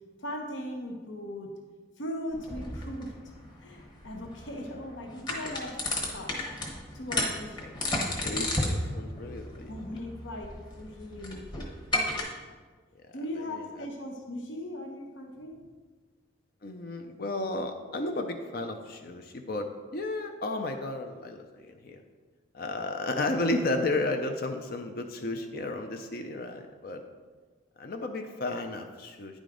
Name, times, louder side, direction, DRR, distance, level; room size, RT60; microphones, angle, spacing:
voice 1, 0.2-1.5 2.0-3.1 3.6-5.8 6.1-6.3 6.9-7.7 9.7-11.7 13.1-15.6, left 1 dB, 70° left, 2 dB, 0.9 m, -38 dB
sound 1, 2.3-12.2, left 1 dB, 20° left, 1.1 m, -34 dB
voice 2, 8.0-9.7 13.5-13.6 16.6-22.0 22.5-27.1 27.8-29.4, left 2 dB, 50° left, 5 dB, 0.5 m, -33 dB
9.7 x 5.0 x 3.8 m, 1.4 s
head